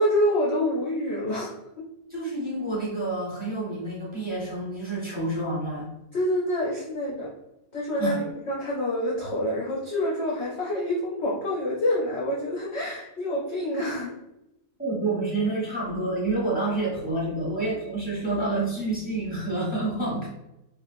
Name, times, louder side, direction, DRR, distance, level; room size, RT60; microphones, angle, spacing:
voice 1, 0.0-1.8 6.1-7.3 7.7-14.1, left 1 dB, 60° left, -5 dB, 0.7 m, -27 dB
voice 2, 2.1-5.9 8.0-8.2 14.8-20.3, right 2 dB, 5° right, -7 dB, 0.9 m, -28 dB
3.3 x 2.4 x 2.5 m, 0.90 s
omnidirectional pair, 1.7 m